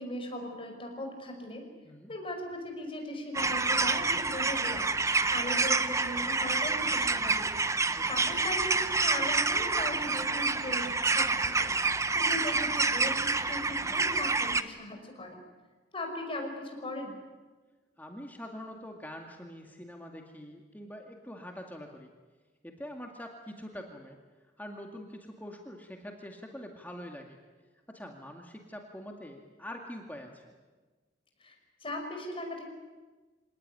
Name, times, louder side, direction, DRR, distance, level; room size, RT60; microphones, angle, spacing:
voice 1, 0.0-1.6 2.1-7.5 8.1-15.4 15.9-17.1 31.4-32.6, left 1 dB, 30° left, 3 dB, 5.8 m, -39 dB
sound 1, 3.3-14.6, right 3 dB, 15° right, 0.9 m, -28 dB
voice 2, 7.9-8.4 18.0-22.1 22.6-24.2 24.6-27.4 27.9-30.6, equal, 10° left, 2 dB, 2.1 m, -44 dB
26.5 x 18.5 x 9.8 m, 1.3 s
head